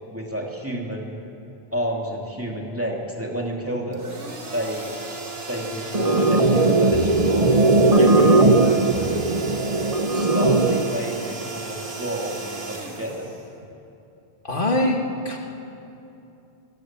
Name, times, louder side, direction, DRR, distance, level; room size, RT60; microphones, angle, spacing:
voice 1, 0.1-1.2 1.7-4.1 4.5-5.0 5.5-7.5 8.0-9.2 10.1-13.3, equal, 10° right, -1 dB, 2.8 m, -30 dB
sound 1, 3.9-13.9, right 3 dB, 65° right, 2.1 m, -36 dB
sound 2, 5.9-10.9, right 2 dB, 35° right, 1.0 m, -18 dB
voice 2, 14.4-15.4, left 1 dB, 50° left, 0 dB, 2.4 m, -23 dB
25.5 x 18.0 x 7.5 m, 2.8 s
omnidirectional pair, 1.1 m